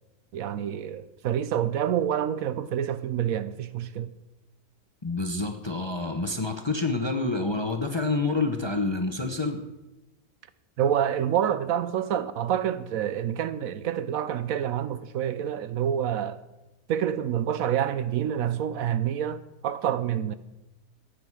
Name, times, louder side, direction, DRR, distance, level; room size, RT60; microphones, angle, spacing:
voice 1, 0.3-4.1 10.8-16.4 16.9-20.3, right 9 dB, 70° right, 1.0 m, -27 dB
voice 2, 5.0-9.6, left 3 dB, 25° left, 0.7 m, -28 dB
15.5 x 9.7 x 4.7 m
omnidirectional pair, 1.6 m